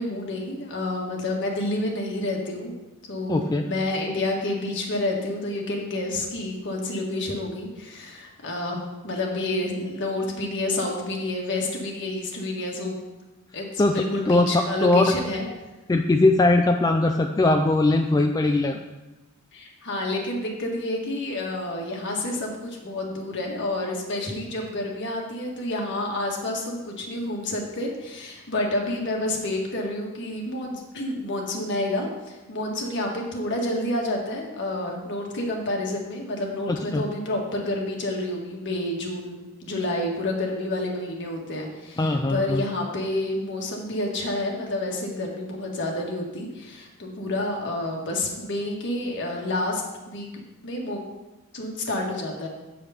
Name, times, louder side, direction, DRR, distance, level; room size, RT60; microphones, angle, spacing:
voice 1, 0.0-2.7 3.1-13.0 13.5-15.5 19.5-50.3 50.6-51.0 51.5-52.5, left 1 dB, 55° left, 0 dB, 1.5 m, -29 dB
voice 2, 3.3-3.6 13.8-14.5 14.8-15.1 15.9-18.8 36.7-37.0 42.0-42.6, left 2 dB, 15° left, 4 dB, 0.3 m, -20 dB
7.8 x 5.0 x 5.6 m, 1.1 s
head